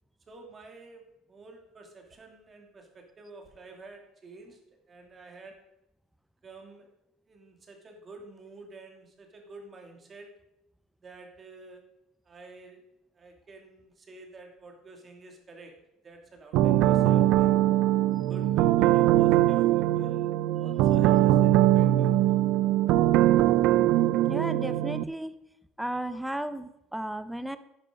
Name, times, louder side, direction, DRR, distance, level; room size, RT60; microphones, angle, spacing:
voice 1, 0.3-1.0 1.3-4.6 4.9-5.6 6.4-6.9 7.3-10.3 11.0-11.8 12.2-12.8 13.1-15.7 16.0-17.5 18.3-22.5, right 3 dB, 25° right, 2 dB, 2.8 m, -49 dB
sound 1, 16.5-25.0, right 13 dB, 70° right, 0.4 m, -22 dB
voice 2, 24.3-25.3 25.8-27.6, right 1 dB, 5° right, 12 dB, 0.7 m, -34 dB
11.0 x 10.5 x 5.2 m, 0.84 s
cardioid pair, 135°, 0 cm